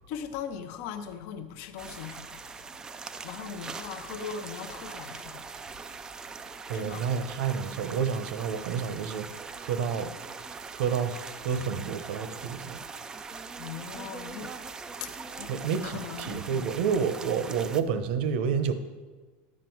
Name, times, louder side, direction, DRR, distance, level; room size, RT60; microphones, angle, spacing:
voice 1, 0.1-2.4 3.2-5.5 6.7-7.1 13.6-14.6 15.0-15.6 15.8-16.5, left 7 dB, 45° left, 0.7 m, -39 dB
sound 1, 1.8-17.8, right 4 dB, 10° right, 0.3 m, -41 dB
voice 2, 6.7-10.1 10.7-12.8 15.5-18.7, right 6 dB, 65° right, 0.8 m, -29 dB
11.0 x 7.4 x 4.6 m
supercardioid pair, 170°, 6 cm